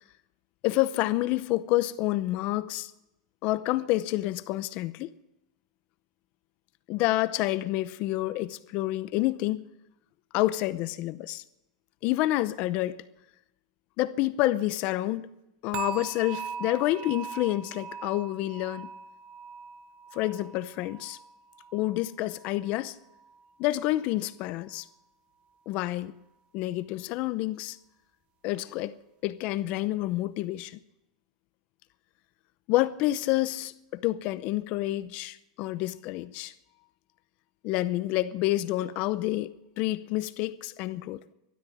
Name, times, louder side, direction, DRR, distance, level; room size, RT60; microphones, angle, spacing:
voice 1, 0.6-2.9 3.4-5.1 6.9-9.7 10.3-11.4 12.0-13.0 14.0-15.3 15.6-18.9 20.1-21.2 21.7-23.0 23.6-24.9 25.7-26.1 26.5-27.8 28.4-28.9 29.2-30.8 32.7-36.5 37.6-41.2, left 16 dB, 40° left, 0.7 m, -28 dB
sound 1, 15.7-22.8 23.1-23.5 24.0-24.1, right 6 dB, 35° right, 0.9 m, -41 dB
12.5 x 12.5 x 8.5 m
supercardioid pair, 150°, 3 cm